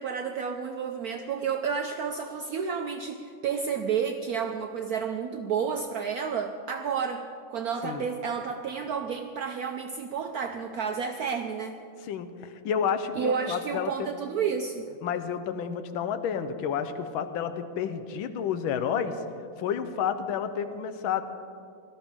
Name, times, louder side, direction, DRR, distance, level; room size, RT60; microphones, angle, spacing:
voice 1, 0.0-11.8 13.1-14.9, right 6 dB, 75° right, 6 dB, 0.8 m, -31 dB
voice 2, 12.1-14.1 15.0-19.2 19.6-21.2, left 7 dB, 85° left, 10 dB, 1.5 m, -30 dB
18.0 x 13.0 x 3.6 m, 2.4 s
omnidirectional pair, 2.2 m